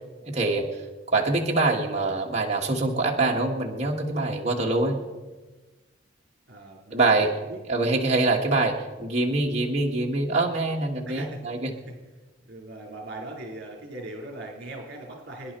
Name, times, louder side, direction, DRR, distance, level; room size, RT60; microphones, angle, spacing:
voice 1, 0.3-0.7 1.1-5.0 6.9-7.3 7.7-11.7, right 2 dB, 35° right, -1 dB, 1.6 m, -24 dB
voice 2, 4.6-5.2 6.5-7.9 11.0-11.4 11.7-11.9 12.5-15.5, right 1 dB, 60° right, 0 dB, 4.0 m, -40 dB
24.5 x 11.0 x 4.4 m, 1.2 s
head